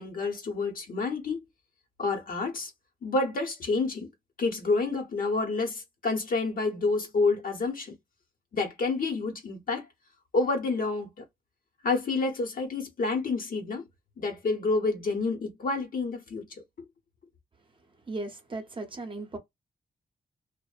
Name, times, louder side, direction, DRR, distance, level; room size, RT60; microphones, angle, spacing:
voice 1, 0.0-1.5 2.0-2.7 3.0-4.1 4.4-7.9 8.5-9.9 10.3-11.2 11.8-13.9 14.2-16.9, left 3 dB, 60° left, 0.9 m, -29 dB
voice 2, 18.1-19.4, right 2 dB, 30° right, 0.7 m, -36 dB
2.7 x 2.0 x 2.3 m
cardioid pair, 105°, 17 cm